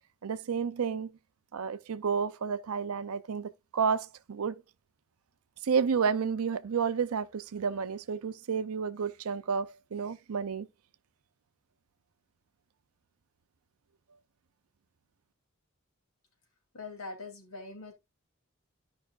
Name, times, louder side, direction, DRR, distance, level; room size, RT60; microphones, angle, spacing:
voice 1, 0.2-1.1 1.5-4.6 5.6-10.7, right 6 dB, 85° right, 0.5 m, -31 dB
voice 2, 16.7-17.9, left 3 dB, 80° left, 2.8 m, -42 dB
13.0 x 5.4 x 2.4 m
head